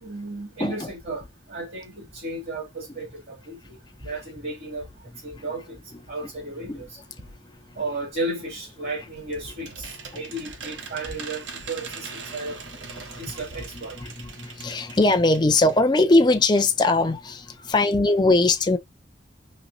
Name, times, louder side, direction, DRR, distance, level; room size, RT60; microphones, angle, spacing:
voice 1, 0.0-3.8 4.0-4.9 5.2-5.8 6.1-7.0 7.8-12.6 13.2-14.0, right 2 dB, 55° right, 2.0 m, -34 dB
sound 1, 8.9-15.8 16.1-16.2 16.4-16.5, right 5 dB, 90° right, 1.0 m, -41 dB
voice 2, 14.4-18.8, left 2 dB, 25° left, 0.5 m, -20 dB
4.2 x 3.3 x 2.6 m
head